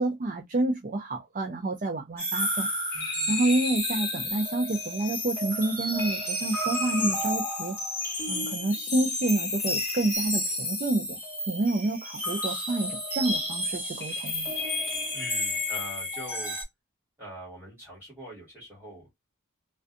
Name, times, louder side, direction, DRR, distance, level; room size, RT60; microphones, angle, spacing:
voice 1, 0.0-2.7 3.3-7.8 8.3-11.2 11.5-14.5, right 2 dB, 35° right, 0.4 m, -28 dB
sound 1, 2.2-16.6, left 1 dB, 10° left, 1.3 m, -31 dB
voice 2, 15.1-16.6 17.2-19.2, right 1 dB, 10° right, 1.5 m, -42 dB
2.5 x 2.2 x 2.4 m
head